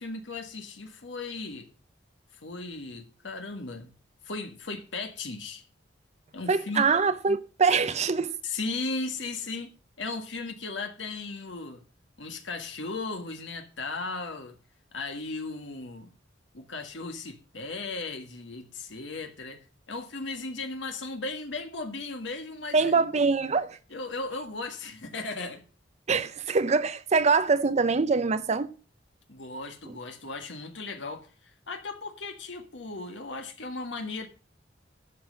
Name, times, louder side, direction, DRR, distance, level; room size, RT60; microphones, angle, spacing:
voice 1, 0.0-1.7 2.4-3.9 4.2-5.6 6.3-6.9 8.4-11.8 12.2-14.6 14.9-16.1 16.5-23.0 23.9-25.6 29.3-34.3, left 3 dB, 75° left, 1.7 m, -36 dB
voice 2, 6.5-8.4 22.7-23.8 26.1-28.7 29.9-30.0, right 4 dB, 35° right, 0.6 m, -24 dB
12.0 x 5.5 x 7.5 m
head